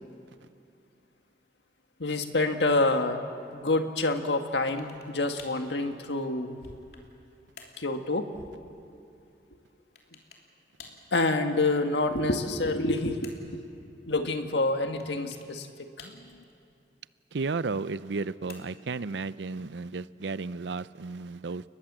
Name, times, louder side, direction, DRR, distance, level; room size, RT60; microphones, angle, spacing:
voice 1, 2.0-3.2 3.5-6.6 7.8-8.3 11.1-13.6 14.0-16.2, left 2 dB, 90° left, 6 dB, 1.8 m, -27 dB
sound 1, 4.7-5.1 5.4-5.7 6.3-7.1 7.6-7.9 10.0-10.5 10.8-11.1 12.5-13.6 15.0-15.5 16.0-16.5 18.0-18.9, left 5 dB, 65° left, 3.1 m, -51 dB
voice 2, 17.3-21.6, right 4 dB, 90° right, 16 dB, 0.6 m, -33 dB
30.0 x 20.5 x 7.5 m, 2.6 s
head